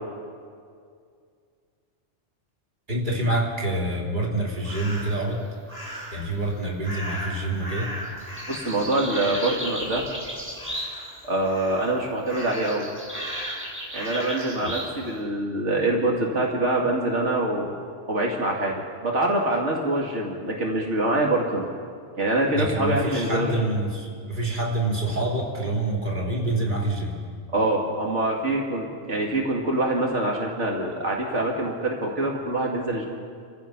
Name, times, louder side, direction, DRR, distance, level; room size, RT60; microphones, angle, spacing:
voice 1, 2.9-5.4 6.1-7.9 14.5-14.7 22.5-27.2, right 2 dB, 40° right, -3 dB, 3.4 m, -26 dB
sound 1, 4.6-5.2 5.7-6.3 6.8-11.2 11.4-11.9 12.3-14.9, equal, 10° right, 6.5 m, -35 dB
voice 2, 8.5-10.1 11.2-12.9 13.9-17.7 18.1-18.7 19.0-21.7 22.2-23.6 27.5-33.1, right 2 dB, 80° right, -1 dB, 2.4 m, -25 dB
29.5 x 15.0 x 5.9 m, 2.2 s
omnidirectional pair, 1.2 m